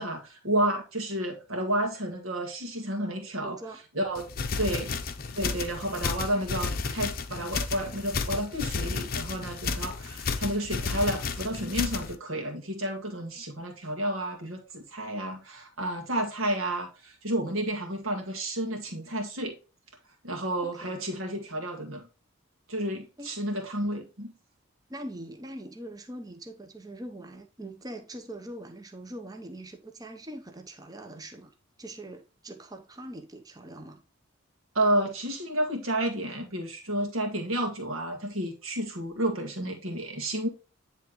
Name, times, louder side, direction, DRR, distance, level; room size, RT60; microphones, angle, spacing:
voice 1, 0.0-3.6 3.9-4.3 4.6-5.0 5.4-19.6 20.2-22.1 22.7-24.3 34.8-40.5, right 1 dB, 80° right, 1.7 m, -31 dB
voice 2, 3.4-3.8 4.6-4.9 20.6-21.0 23.2-23.3 24.9-34.0, right 1 dB, 20° right, 0.7 m, -42 dB
sound 1, 4.2-12.1, left 4 dB, 45° left, 0.6 m, -32 dB
10.0 x 3.5 x 3.0 m
head